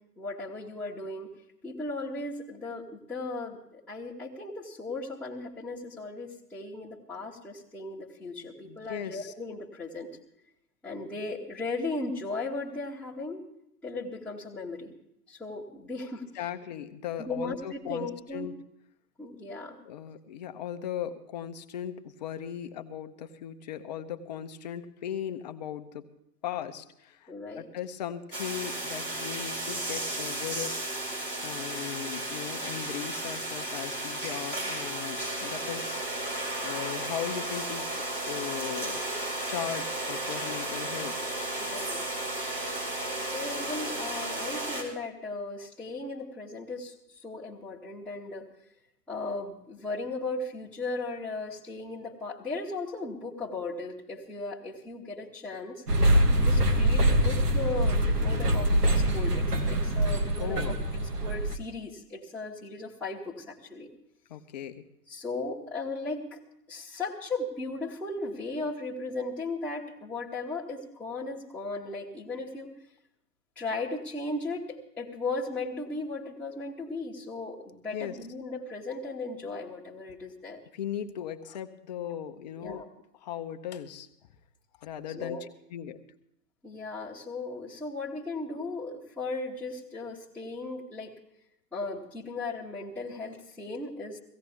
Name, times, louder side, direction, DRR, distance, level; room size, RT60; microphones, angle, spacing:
voice 1, 0.2-1.3 1.6-10.1 10.8-13.4 13.8-14.9 15.3-16.5 17.2-18.5 19.2-19.8 27.3-27.7 41.6-42.2 43.3-48.5 49.1-55.8 56.4-60.7 61.2-63.9 65.1-66.4 66.7-72.7 73.5-80.6 82.6-82.9 85.1-85.4 86.6-91.2 91.7-94.2, left 3 dB, ahead, -10 dB, 1.2 m, -36 dB
voice 2, 8.6-9.3 16.3-18.5 19.8-26.1 26.4-30.7 31.4-36.0 36.6-39.1 39.5-41.1 60.4-60.8 64.3-64.8 77.9-78.2 80.7-82.8 83.2-84.1 84.8-85.4 85.7-86.0, left 10 dB, 25° left, 8 dB, 0.7 m, -38 dB
sound 1, 28.3-44.8, right 1 dB, 85° right, 4.8 m, -34 dB
sound 2, 55.9-61.5, right 1 dB, 70° right, 1.8 m, -24 dB
17.0 x 16.0 x 3.5 m, 0.80 s
figure-of-eight pair, 120°, 48 cm